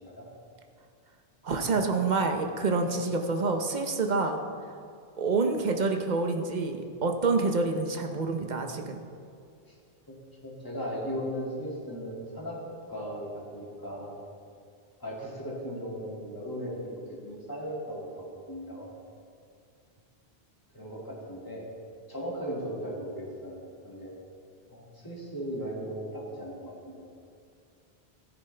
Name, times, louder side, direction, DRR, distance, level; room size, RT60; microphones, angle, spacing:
voice 1, 1.4-4.4 5.2-9.0, right 3 dB, 45° right, 4 dB, 0.9 m, -27 dB
voice 2, 10.4-12.5 12.9-14.2 15.0-18.9 20.7-21.6 22.1-24.1 24.7-27.1, equal, 20° left, -5 dB, 2.3 m, -37 dB
14.5 x 10.0 x 3.4 m, 2.4 s
omnidirectional pair, 1.1 m